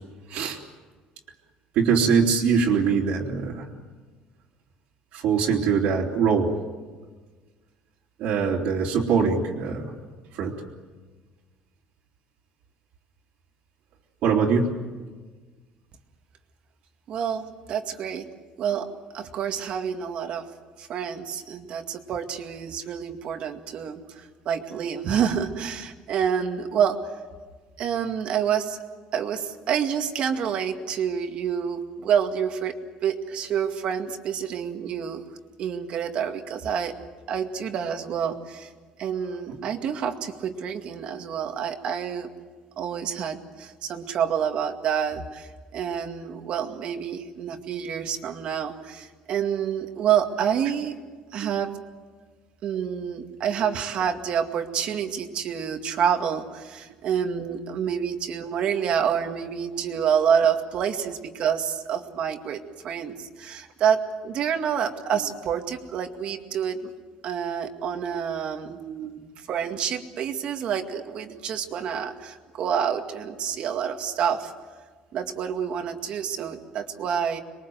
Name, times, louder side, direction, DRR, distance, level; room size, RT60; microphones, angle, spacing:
voice 1, 1.7-3.7 5.1-6.5 8.2-9.9 10.3-10.6 14.2-14.7 51.4-51.5 59.9-60.0 68.8-69.2 76.4-76.5, right 6 dB, 70° right, -4 dB, 3.2 m, -23 dB
voice 2, 17.1-18.3 18.6-18.9 19.1-20.5 20.8-27.0 27.8-28.8 29.1-32.8 33.0-35.2 35.6-36.9 37.3-38.7 39.0-42.3 42.8-50.9 51.3-51.7 52.6-66.9 67.2-68.8 69.5-74.5 75.1-77.4, right 8 dB, 50° right, 6 dB, 2.1 m, -28 dB
26.5 x 22.5 x 7.9 m, 1.4 s
cardioid pair, 145°, 2 cm